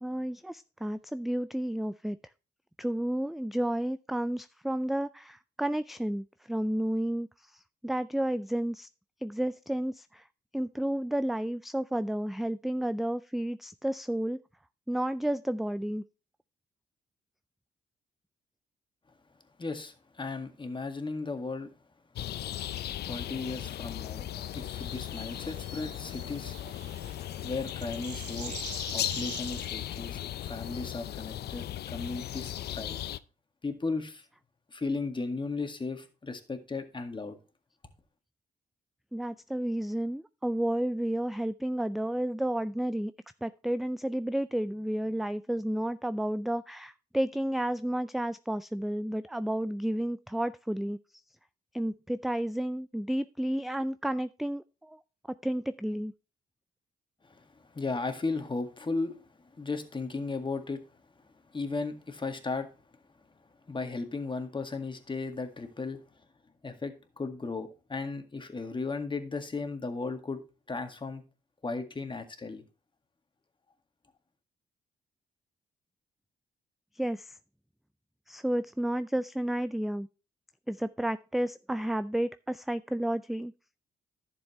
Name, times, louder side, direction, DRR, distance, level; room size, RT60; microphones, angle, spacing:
voice 1, 0.0-2.2 2.8-8.9 9.2-10.3 10.5-14.4 14.9-16.0 39.1-43.1 43.4-51.0 51.7-55.0 55.4-56.1 76.9-77.4 78.3-80.1 80.7-83.5, right 1 dB, ahead, 0.4 m, -31 dB
voice 2, 19.6-21.7 23.0-24.3 24.5-26.6 27.2-28.6 28.9-33.0 33.6-34.2 34.7-37.4 57.2-60.9 61.2-62.7 63.7-66.0 66.6-70.4 70.7-71.2 71.6-72.6, left 3 dB, 25° left, 1.8 m, -36 dB
sound 1, 22.2-33.2, left 12 dB, 65° left, 0.5 m, -37 dB
sound 2, 24.3-30.2, right 10 dB, 85° right, 1.0 m, -47 dB
11.0 x 7.2 x 3.1 m
supercardioid pair, 65°, 18 cm